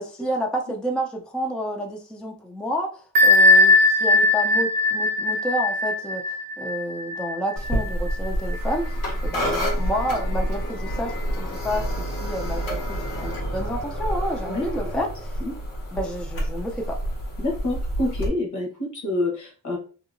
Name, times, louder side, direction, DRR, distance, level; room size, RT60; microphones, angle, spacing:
voice 1, 0.0-15.1 15.9-17.0, equal, 5° left, 2 dB, 0.4 m, -30 dB
Bell, 3.1-8.6, left 2 dB, 85° right, 0.5 m, -19 dB
sound 1, 7.6-18.3, equal, 80° left, 1.3 m, -28 dB
voice 2, 17.4-19.8, left 2 dB, 65° left, 0 dB, 1.2 m, -27 dB
2.9 x 2.6 x 2.5 m, 0.39 s
cardioid pair, 100°, 33 cm